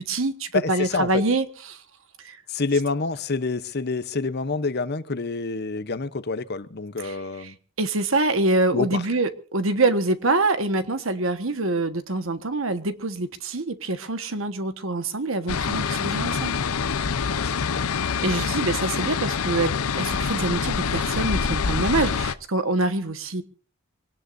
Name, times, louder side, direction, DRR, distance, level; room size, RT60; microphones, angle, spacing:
voice 1, 0.0-1.8 2.2-2.4 7.0-16.5 18.2-23.4, right 2 dB, 65° right, 1.4 m, -25 dB
voice 2, 0.5-1.2 2.5-7.6 8.7-9.0 17.3-17.8, left 3 dB, 50° left, 0.8 m, -27 dB
sound 1, 15.5-22.3, left 6 dB, 85° left, 0.7 m, -26 dB
24.5 x 18.0 x 2.6 m
head